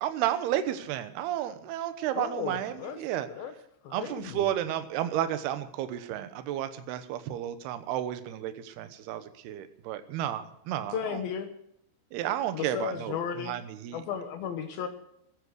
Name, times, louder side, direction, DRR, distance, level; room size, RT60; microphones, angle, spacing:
voice 1, 0.0-3.3 3.9-11.3 12.1-14.0, right 11 dB, 70° right, 10 dB, 2.6 m, -32 dB
voice 2, 2.2-3.0 3.3-3.5 3.8-4.5 10.9-11.5 12.5-13.5 13.9-14.9, left 7 dB, 80° left, 7 dB, 2.2 m, -34 dB
14.5 x 13.5 x 6.4 m, 0.77 s
omnidirectional pair, 5.8 m